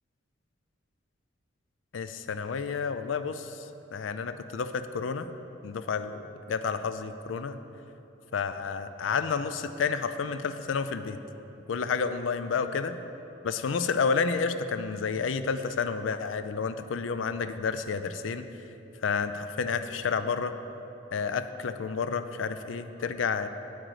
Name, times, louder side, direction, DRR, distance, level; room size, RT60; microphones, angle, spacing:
voice 1, 1.9-5.3 5.6-7.6 8.3-11.2 11.7-13.0 13.4-18.5 19.0-20.5 21.1-23.5, left 5 dB, 90° left, 11 dB, 0.4 m, -30 dB
8.9 x 7.7 x 4.7 m, 3.0 s
head